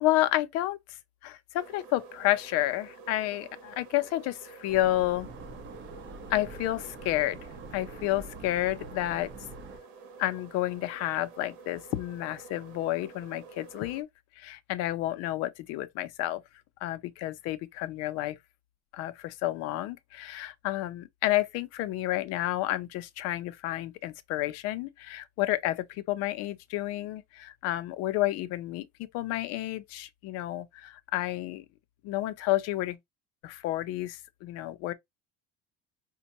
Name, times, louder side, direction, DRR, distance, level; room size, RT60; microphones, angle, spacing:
voice 1, 0.0-1.0 1.2-5.3 6.3-7.4 7.7-9.3 10.2-14.1 14.4-16.4 16.8-18.4 18.9-31.6 32.0-33.0 33.4-34.9, left 15 dB, 55° left, 0.6 m, -30 dB
sound 1, 1.6-14.0, right 5 dB, 70° right, 1.2 m, -50 dB
sound 2, 4.7-9.8, right 2 dB, 40° right, 1.0 m, -45 dB
5.2 x 2.2 x 2.9 m
cardioid pair, 155°, 30 cm